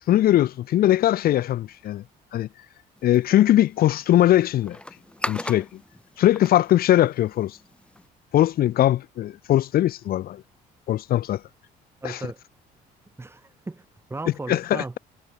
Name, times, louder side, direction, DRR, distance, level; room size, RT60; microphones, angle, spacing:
voice 1, 0.1-2.0 2.3-2.5 3.0-4.8 5.3-5.7 6.2-7.6 8.3-10.4 10.9-11.4 12.0-12.2 14.5-15.0, left 13 dB, 65° left, 1.2 m, -20 dB
sound 1, 3.0-8.1, left 1 dB, 5° left, 2.9 m, -38 dB
voice 2, 12.0-12.4 13.2-15.0, right 3 dB, 15° right, 1.9 m, -36 dB
cardioid pair, 110°, 17 cm